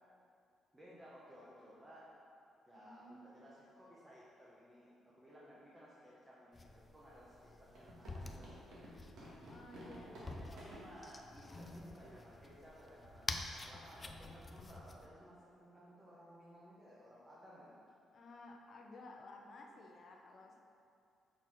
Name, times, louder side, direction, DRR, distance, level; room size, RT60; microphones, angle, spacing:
voice 1, 0.7-2.1 2.7-8.8 9.7-17.7, equal, 15° right, -7 dB, 0.8 m, -58 dB
voice 2, 2.7-3.4 9.5-10.3 18.1-20.6, left 2 dB, 40° left, 1 dB, 0.7 m, -55 dB
sound 1, 6.5-15.1, left 2 dB, 20° left, 0.3 m, -49 dB
sound 2, 7.7-10.8 11.6-11.7 12.0-12.2 12.4-12.6 13.0-13.3, right 1 dB, 65° right, 1.6 m, -53 dB
6.1 x 4.4 x 4.7 m, 2.5 s
cardioid pair, 170°, 0 cm